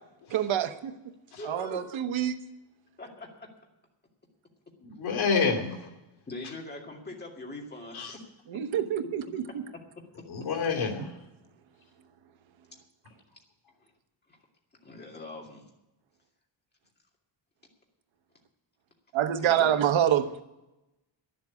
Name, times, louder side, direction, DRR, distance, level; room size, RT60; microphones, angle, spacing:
voice 1, 0.3-1.1 1.4-2.4 8.5-9.7 11.0-11.1 19.1-20.4, right 10 dB, 80° right, 8 dB, 1.1 m, -27 dB
voice 2, 1.4-1.8 3.0-3.5 6.3-8.2 13.8-13.9 14.8-15.6 19.4-19.7, left 2 dB, 20° left, 0 dB, 2.3 m, -42 dB
voice 3, 4.8-5.9 7.9-8.2 10.3-11.1, left 5 dB, 80° left, 0 dB, 2.9 m, -28 dB
11.5 x 7.7 x 9.6 m, 0.96 s
wide cardioid pair, 170°, 47 cm